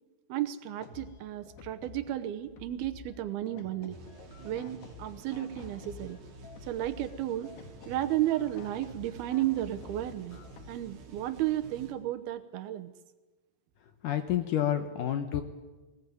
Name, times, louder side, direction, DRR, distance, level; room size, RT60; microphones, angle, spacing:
voice 1, 0.3-4.0 4.4-6.2 6.7-7.5 7.9-10.4 10.7-12.9, right 13 dB, 75° right, 10 dB, 2.8 m, -33 dB
sound 1, 0.8-10.8, left 5 dB, 85° left, 4.0 m, -50 dB
sound 2, 3.9-11.9, right 3 dB, 50° right, 2.9 m, -51 dB
voice 2, 14.0-15.4, left 11 dB, 70° left, 8 dB, 2.2 m, -29 dB
20.0 x 19.0 x 9.2 m, 1.2 s
omnidirectional pair, 4.6 m